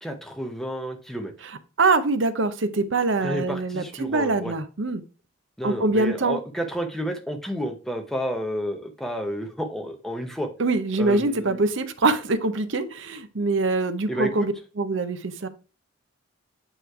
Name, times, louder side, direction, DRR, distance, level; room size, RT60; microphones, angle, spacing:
voice 1, 0.0-1.3 3.2-4.5 5.6-10.5 11.0-11.6 14.1-14.5, equal, ahead, 4 dB, 0.8 m, -31 dB
voice 2, 1.8-5.0 5.6-6.4 10.6-15.5, right 3 dB, 65° right, 11 dB, 0.7 m, -24 dB
9.1 x 3.2 x 4.6 m, 0.35 s
head